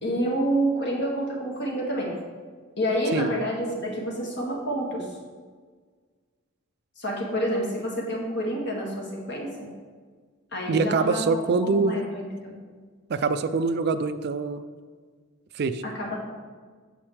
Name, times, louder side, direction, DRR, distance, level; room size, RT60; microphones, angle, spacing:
voice 1, 0.0-2.1 2.8-5.1 7.0-9.7 10.5-12.5 15.8-16.2, right 1 dB, 60° left, -2 dB, 1.9 m, -28 dB
voice 2, 10.7-11.9 13.1-14.6 15.5-15.8, right 4 dB, 55° right, 11 dB, 0.4 m, -24 dB
8.7 x 7.0 x 3.3 m, 1.5 s
head